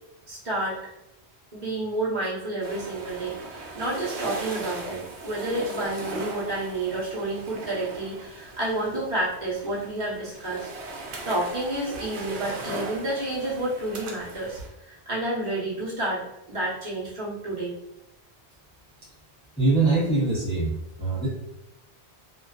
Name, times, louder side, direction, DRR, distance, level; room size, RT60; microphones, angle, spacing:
voice 1, 0.3-0.8 1.5-10.7 10.9-17.7, right 1 dB, 45° right, -7 dB, 0.9 m, -30 dB
sound 1, 2.6-14.7, right 2 dB, 80° right, 0.9 m, -38 dB
voice 2, 19.6-20.7 21.0-21.3, right 3 dB, 5° left, -8 dB, 0.5 m, -22 dB
2.4 x 2.2 x 2.3 m, 0.87 s
omnidirectional pair, 1.1 m